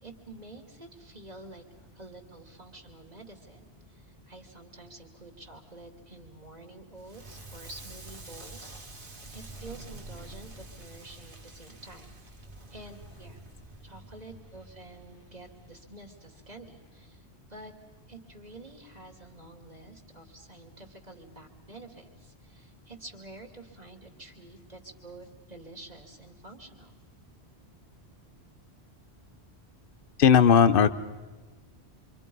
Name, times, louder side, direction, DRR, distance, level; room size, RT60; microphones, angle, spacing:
voice 1, 0.0-12.4 12.7-13.4 13.8-17.7 18.1-27.0, right 2 dB, 40° right, 3 dB, 2.8 m, -49 dB
Crackle, 7.0-15.9, right 2 dB, 55° right, 2.0 m, -47 dB
voice 2, 30.2-30.9, left 7 dB, 55° left, 13 dB, 1.0 m, -17 dB
27.5 x 25.0 x 5.4 m, 1.2 s
omnidirectional pair, 1.1 m